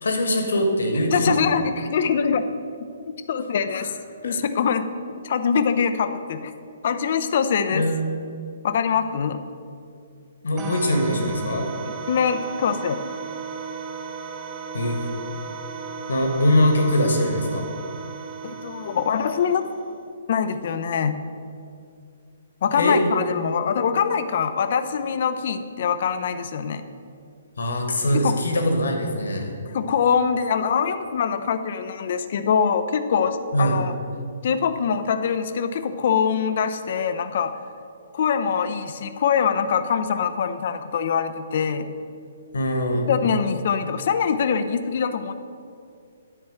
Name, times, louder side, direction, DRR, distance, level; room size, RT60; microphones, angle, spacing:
voice 1, 0.0-1.6 3.7-3.8 4.2-4.4 7.7-8.0 10.4-11.7 14.7-15.0 16.1-17.7 22.8-23.0 27.6-29.5 33.5-33.8 42.5-43.1, left 1 dB, 65° left, 3 dB, 1.5 m, -22 dB
voice 2, 1.1-2.5 3.3-3.9 4.2-4.9 5.2-6.5 6.8-7.8 8.6-9.4 12.1-13.0 18.4-19.6 20.3-21.2 22.6-26.8 28.2-28.3 29.7-33.9 34.4-37.5 38.1-41.9 43.1-45.3, left 6 dB, 50° left, 10 dB, 0.6 m, -23 dB
sound 1, 10.6-20.0, right 6 dB, 20° right, 0.6 m, -35 dB
10.0 x 4.3 x 7.4 m, 2.4 s
figure-of-eight pair, 125°, 0 cm